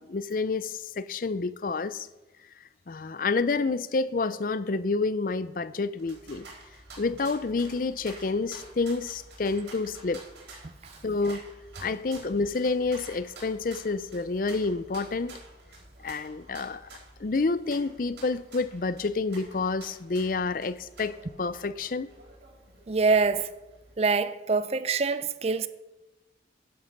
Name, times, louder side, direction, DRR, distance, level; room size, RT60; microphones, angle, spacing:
voice 1, 0.0-2.1 2.9-6.5 7.0-10.2 11.0-11.4 11.8-15.4 16.0-16.9 17.2-22.1, left 3 dB, 50° left, 0.5 m, -29 dB
sound 1, 6.0-23.9, right 3 dB, 75° right, 4.7 m, -50 dB
voice 2, 22.9-23.5 24.0-25.7, right 4 dB, 35° right, 0.5 m, -25 dB
11.0 x 11.0 x 5.2 m
head